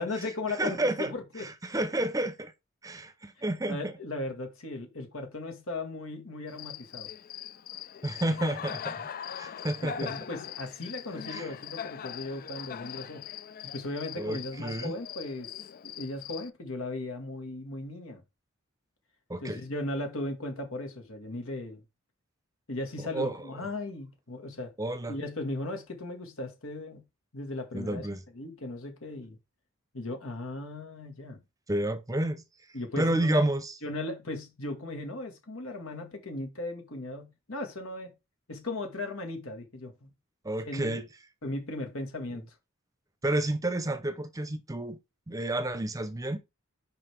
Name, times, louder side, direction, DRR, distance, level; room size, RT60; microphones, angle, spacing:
voice 1, 0.0-1.5 3.7-7.1 9.8-13.3 13.6-15.5 15.8-18.2 19.4-21.8 22.7-24.7 25.1-27.1 27.3-28.1 28.3-29.4 29.9-31.4 32.7-33.5 33.8-38.1 38.5-40.1 40.6-41.0 41.4-42.4, left 2 dB, 80° left, 1.9 m, -37 dB
voice 2, 0.5-1.1 1.4-2.5 2.8-3.9 8.0-9.0 9.4-10.1 11.3-11.5 14.2-14.9 19.3-19.6 23.0-23.5 24.8-25.1 27.7-28.2 31.7-32.4 33.0-33.7 40.4-41.1 43.2-45.0 45.3-46.4, right 1 dB, 15° right, 0.7 m, -30 dB
Cricket, 6.5-16.5, left 8 dB, 45° left, 0.4 m, -41 dB
7.4 x 5.2 x 3.5 m
head